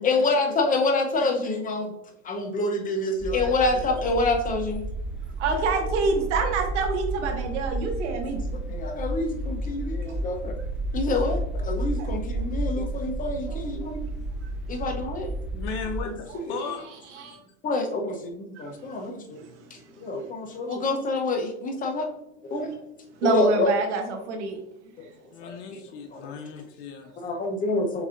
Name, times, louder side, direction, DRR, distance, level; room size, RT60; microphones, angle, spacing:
voice 1, 0.0-2.0 2.2-4.8 8.0-8.2 8.5-10.6 10.9-14.0 14.7-15.3 16.0-16.6 17.6-19.4 19.7-22.1 22.4-22.8 23.2-23.7 25.0-25.1 25.4-25.8 26.1-26.3 27.2-28.1, left 2 dB, 25° left, 3 dB, 0.8 m, -27 dB
sound 1, 3.2-16.0, right 1 dB, 5° right, 0.3 m, -31 dB
voice 2, 5.4-8.4 12.0-12.1 13.5-13.9 17.2-17.4 18.6-18.7 23.2-24.6, right 3 dB, 90° right, 3 dB, 1.1 m, -27 dB
voice 3, 15.5-16.9 25.3-27.1, left 5 dB, 75° left, 2 dB, 0.7 m, -36 dB
6.9 x 2.8 x 2.5 m, 0.84 s
supercardioid pair, 125°, 34 cm